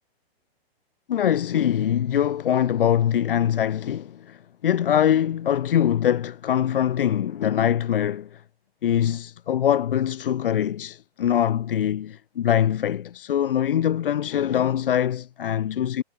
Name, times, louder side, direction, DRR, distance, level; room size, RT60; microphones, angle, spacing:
voice 1, 1.1-4.4 4.6-8.4 8.8-16.0, left 10 dB, 60° left, 3.1 m, -23 dB
hypercardioid pair, 170°, 32 cm